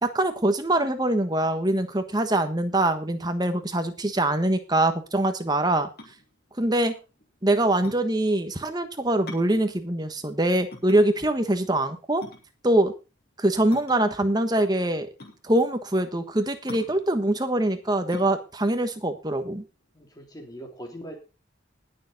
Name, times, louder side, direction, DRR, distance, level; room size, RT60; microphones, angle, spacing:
voice 1, 0.0-5.9 6.6-6.9 7.4-12.2 12.6-12.9 13.4-15.1 15.4-19.6, right 1 dB, 20° right, 8 dB, 1.3 m, -23 dB
sound 1, 5.9-20.2, left 2 dB, 50° left, 3.4 m, -46 dB
voice 2, 19.9-21.2, equal, 20° left, 2 dB, 3.3 m, -41 dB
20.0 x 6.9 x 4.0 m, 0.31 s
head